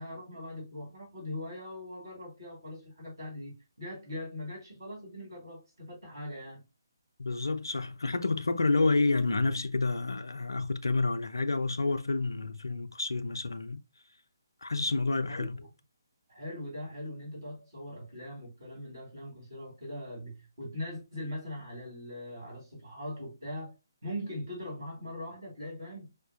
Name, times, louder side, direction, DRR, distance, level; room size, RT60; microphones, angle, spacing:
voice 1, 0.0-6.6 15.3-15.7 16.3-23.7 24.0-26.1, left 1 dB, 60° right, 1.9 m, -41 dB
voice 2, 7.2-13.8 14.6-15.6, left 3 dB, 75° left, 0.3 m, -29 dB
4.8 x 2.2 x 2.5 m
figure-of-eight pair, 140°, 2 cm